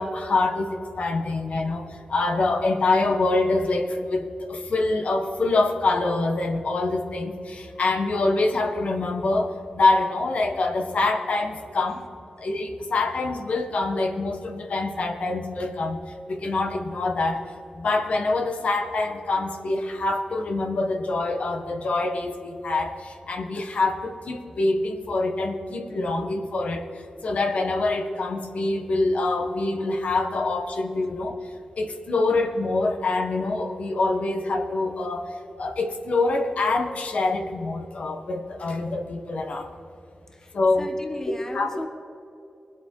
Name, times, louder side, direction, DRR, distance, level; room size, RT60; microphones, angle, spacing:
voice 1, 0.0-12.0 12.4-16.0 16.3-17.4 17.7-39.7 40.5-40.9 41.2-41.7, left 2 dB, 70° left, 4 dB, 1.5 m, -25 dB
voice 2, 40.8-41.9, left 2 dB, 20° left, 6 dB, 1.1 m, -36 dB
21.0 x 8.0 x 4.7 m, 2.7 s
wide cardioid pair, 80°, 2 cm